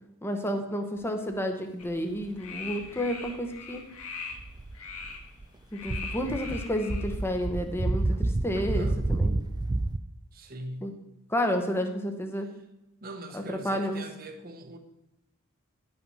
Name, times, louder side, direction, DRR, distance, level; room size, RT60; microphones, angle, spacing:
voice 1, 0.2-3.8 5.7-9.3 10.8-10.9 11.3-12.5 13.3-14.0, equal, 10° left, 5 dB, 0.9 m, -31 dB
sound 1, 1.8-7.4, left 5 dB, 85° left, 1.5 m, -42 dB
sound 2, 4.3-5.5 5.8-10.0, right 2 dB, 20° right, 0.3 m, -29 dB
voice 2, 8.6-9.2 10.3-11.0 13.0-14.8, right 1 dB, 45° right, 7 dB, 1.0 m, -41 dB
10.5 x 5.8 x 5.5 m, 0.91 s
head